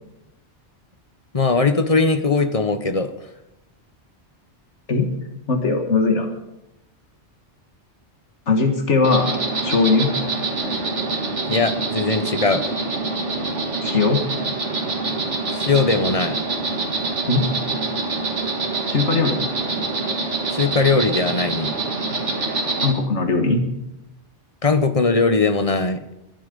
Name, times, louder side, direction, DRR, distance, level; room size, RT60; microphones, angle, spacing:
voice 1, 1.3-3.1 11.5-12.7 15.5-16.4 20.5-21.7 24.6-26.0, left 4 dB, 35° left, 10 dB, 1.0 m, -20 dB
voice 2, 5.5-6.3 8.5-9.3 9.6-10.1 13.8-14.2 17.3-17.5 18.9-19.5 22.8-23.6, left 3 dB, 80° left, 6 dB, 1.9 m, -19 dB
Insect, 9.0-22.9, right 3 dB, 85° right, 2.3 m, -25 dB
22.0 x 11.5 x 5.3 m, 0.89 s
omnidirectional pair, 1.2 m